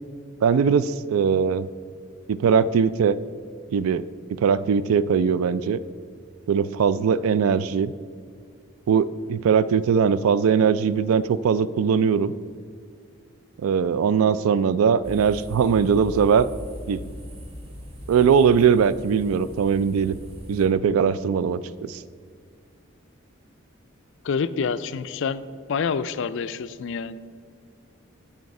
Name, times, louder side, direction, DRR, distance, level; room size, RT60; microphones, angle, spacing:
voice 1, 0.4-1.7 2.3-3.2 3.7-4.0 4.4-5.8 6.5-7.9 8.9-12.3 13.6-16.5 16.9-17.0 18.1-20.2 20.5-21.6 21.9-22.0, right 6 dB, 80° right, 17 dB, 0.3 m, -20 dB
sound 1, 15.0-20.7, left 1 dB, 25° right, 1.1 m, -39 dB
voice 2, 24.2-25.4 25.7-27.2, left 5 dB, 60° left, 14 dB, 0.3 m, -27 dB
9.3 x 7.5 x 4.8 m, 2.1 s
head